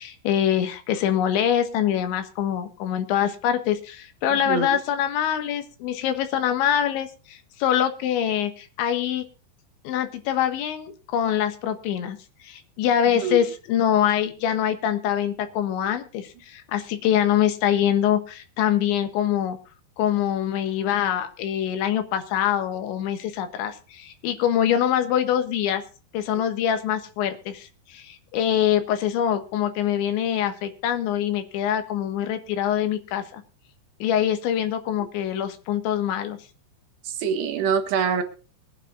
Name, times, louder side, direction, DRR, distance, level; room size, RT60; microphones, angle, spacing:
voice 1, 0.0-9.3 9.9-19.6 20.0-25.8 26.1-33.4 34.0-36.4, left 10 dB, 85° left, 8 dB, 3.8 m, -24 dB
voice 2, 4.3-4.8 13.2-13.4 37.1-38.2, right 6 dB, 70° right, 6 dB, 3.5 m, -25 dB
23.5 x 10.0 x 2.5 m, 0.35 s
omnidirectional pair, 5.2 m